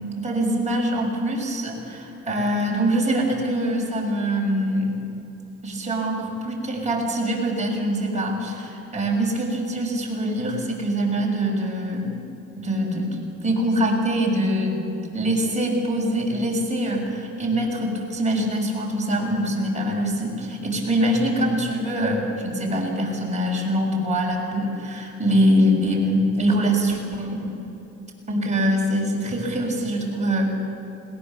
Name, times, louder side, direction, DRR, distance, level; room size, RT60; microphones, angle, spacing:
voice 1, 0.0-5.0 5.6-12.2 12.6-14.9 15.1-27.6 28.3-30.5, equal, 25° right, -2 dB, 6.5 m, -24 dB
21.5 x 18.5 x 7.0 m, 3.0 s
cardioid pair, 90°, 30 cm